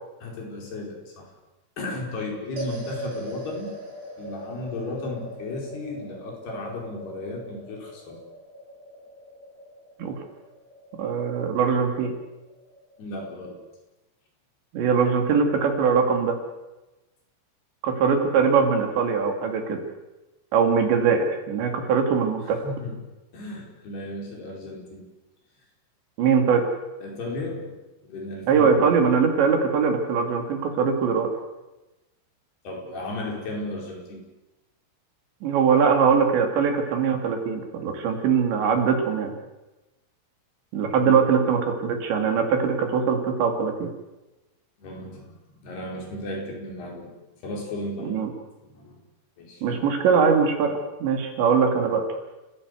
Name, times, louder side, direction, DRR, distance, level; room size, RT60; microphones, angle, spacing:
voice 1, 0.2-1.3 1.8-3.8 4.2-8.2 13.0-13.6 22.4-23.0 23.3-25.0 27.0-28.9 32.6-34.2 44.8-47.1 47.4-48.2 48.6-49.0 49.4-49.8, left 2 dB, 55° left, 0 dB, 6.6 m, -35 dB
sound 1, 2.6-13.0, equal, 35° right, 6.9 m, -41 dB
voice 2, 11.0-12.1 14.7-16.4 17.8-19.8 20.5-22.6 26.2-26.7 28.5-31.3 35.4-39.3 40.7-43.9 48.0-48.3 49.6-52.0, right 6 dB, 65° right, 4 dB, 4.6 m, -22 dB
30.0 x 16.0 x 8.2 m, 1.0 s
omnidirectional pair, 5.7 m